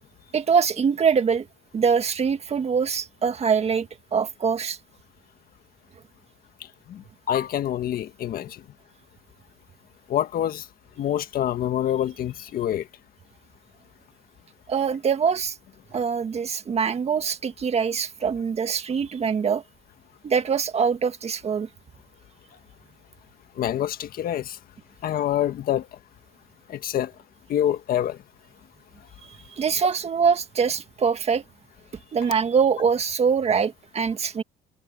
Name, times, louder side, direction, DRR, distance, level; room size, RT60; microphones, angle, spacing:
voice 1, 0.3-1.5 1.7-4.8 14.7-15.6 15.9-19.6 20.2-21.7 29.5-31.4 32.1-34.4, right 6 dB, 40° right, 1.7 m, -23 dB
voice 2, 7.3-8.6 10.1-10.6 11.0-12.8 23.6-24.6 25.0-25.9 26.7-27.1 27.5-28.2, left 11 dB, 60° left, 1.6 m, -26 dB
cardioid pair, 110°, 17 cm